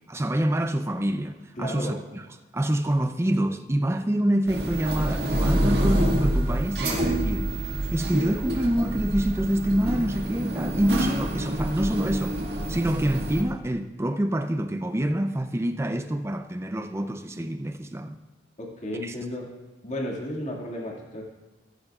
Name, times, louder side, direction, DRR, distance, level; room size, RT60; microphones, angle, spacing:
voice 1, 0.1-2.3 2.5-7.6 7.9-12.4 12.7-18.2 19.0-19.2, right 1 dB, 15° right, 0.5 m, -26 dB
voice 2, 1.6-2.0 18.6-19.5 19.8-21.2, left 1 dB, 40° left, 2.0 m, -33 dB
sound 1, 4.5-13.4, right 1 dB, 70° right, 1.9 m, -27 dB
14.5 x 14.5 x 2.4 m
head